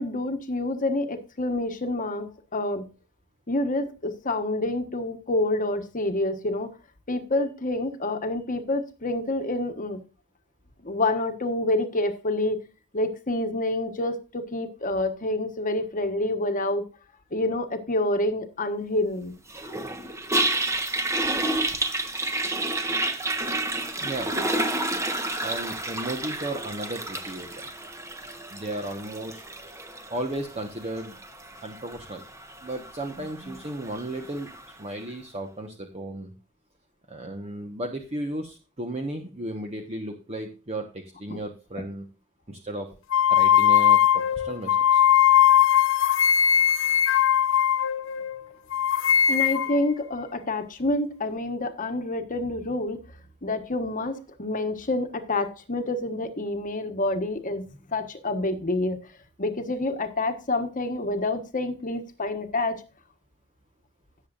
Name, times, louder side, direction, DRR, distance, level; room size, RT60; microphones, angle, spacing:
voice 1, 0.0-2.3 2.5-2.9 3.5-6.7 7.1-10.0 10.8-12.6 12.9-16.8 17.3-19.3 33.4-33.5 41.3-41.4 49.3-53.0 53.4-59.0 59.4-62.8, left 2 dB, 40° left, 7 dB, 1.3 m, -28 dB
Toilet flush, 19.5-34.7, right 2 dB, 15° right, 1.1 m, -30 dB
voice 2, 24.0-24.3 25.4-27.7 28.5-29.4 30.1-31.2 31.6-32.2 32.6-34.5 34.8-36.3 37.1-42.1 42.5-43.0 43.3-45.0, right 1 dB, 30° right, 4 dB, 1.2 m, -34 dB
sound 1, 43.1-48.4 48.7-49.8, left 9 dB, 65° left, 0.7 m, -20 dB
17.0 x 7.2 x 2.5 m, 0.34 s
head